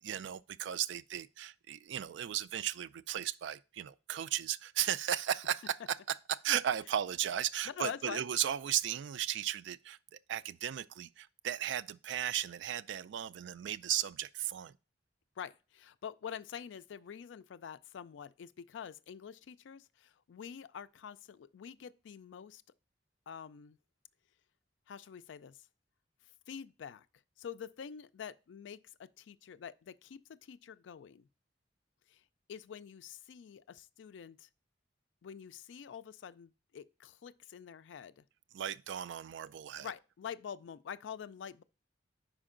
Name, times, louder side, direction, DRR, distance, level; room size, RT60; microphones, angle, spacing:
voice 1, 0.0-10.0 10.3-14.8 38.5-39.9, right 10 dB, 70° right, 0.3 m, -35 dB
voice 2, 7.7-8.2 15.4-22.6 23.3-23.8 24.9-25.6 26.5-27.1 27.4-31.2 32.1-32.2 32.5-34.5 35.2-38.2 39.8-41.6, left 7 dB, 75° left, 0.3 m, -46 dB
5.2 x 4.9 x 3.7 m
head